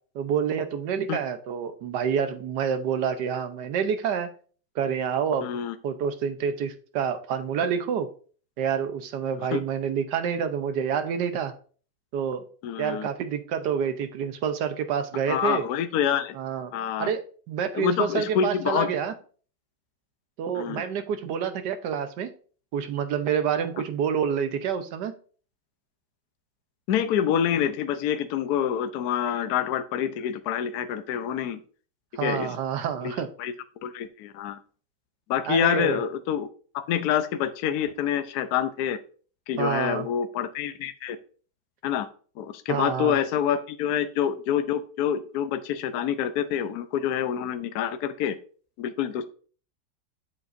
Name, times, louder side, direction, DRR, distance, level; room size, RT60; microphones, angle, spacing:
voice 1, 0.1-4.3 4.7-8.1 8.6-11.5 12.1-12.4 12.8-15.7 16.3-16.7 17.0-17.2 17.5-19.1 20.4-22.3 22.7-25.1 32.1-33.3 35.5-36.0 39.6-40.1 42.7-43.2, right 7 dB, 70° right, 9 dB, 1.4 m, -28 dB
voice 2, 5.4-5.7 9.5-9.6 12.6-13.1 15.3-16.3 16.7-17.1 17.8-18.9 20.5-20.8 26.9-31.6 32.2-32.6 33.4-33.5 33.8-34.6 35.3-36.5 36.7-39.0 39.5-41.2 41.8-42.1 42.4-48.4 48.8-49.2, left 9 dB, 65° left, 10 dB, 1.0 m, -27 dB
8.0 x 7.2 x 2.6 m, 0.42 s
omnidirectional pair, 1.9 m